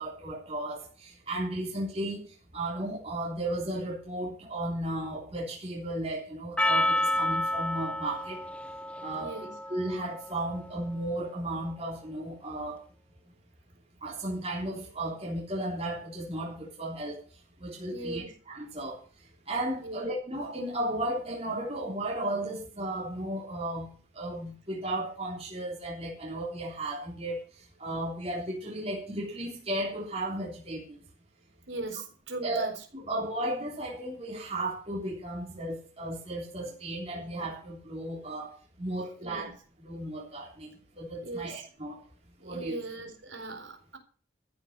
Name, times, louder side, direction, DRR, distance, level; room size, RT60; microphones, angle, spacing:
voice 1, 0.0-2.2 2.5-8.4 9.0-9.3 9.7-12.8 14.0-17.2 17.6-19.0 19.5-23.9 24.1-27.4 27.8-30.8 32.4-32.7 32.9-38.5 38.8-39.5 39.8-42.0 42.4-42.8, right 1 dB, 30° right, 3.6 m, -34 dB
Percussion, 6.6-11.1, left 1 dB, 5° left, 0.8 m, -31 dB
voice 2, 9.2-9.5 17.9-18.3 19.8-20.1 31.7-32.7 33.0-33.1 37.1-37.3 39.2-39.6 41.2-41.7 42.4-44.0, right 2 dB, 75° right, 4.0 m, -39 dB
14.0 x 7.8 x 6.8 m
head